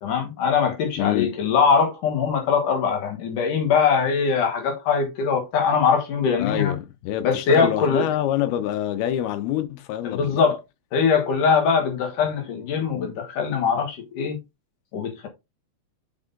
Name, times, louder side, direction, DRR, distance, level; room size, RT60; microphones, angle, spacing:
voice 1, 0.0-6.7 7.2-8.1 10.0-10.6 10.9-14.4 14.9-15.3, left 6 dB, 65° left, 2.7 m, -22 dB
voice 2, 1.0-1.3 6.4-10.3, left 12 dB, 90° left, 2.8 m, -26 dB
6.2 x 5.5 x 3.8 m
omnidirectional pair, 4.4 m